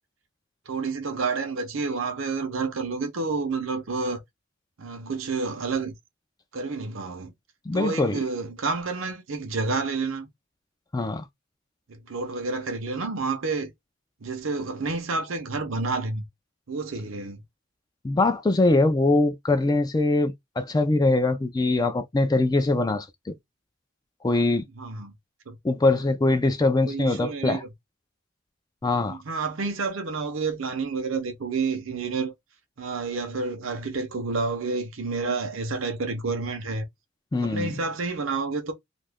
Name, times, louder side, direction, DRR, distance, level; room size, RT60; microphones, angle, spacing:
voice 1, 0.7-4.2 4.8-5.9 6.5-7.3 7.7-10.3 11.9-13.7 14.2-16.2 16.7-17.4 24.8-25.1 25.5-25.6 26.9-27.7 29.1-32.3 32.8-36.8 37.4-38.7, right 4 dB, 70° right, 0.7 m, -29 dB
voice 2, 7.7-8.2 10.9-11.2 18.0-23.3 24.2-24.6 25.6-27.6 28.8-29.2 37.3-37.7, left 2 dB, 20° left, 0.3 m, -22 dB
2.6 x 2.4 x 3.4 m
head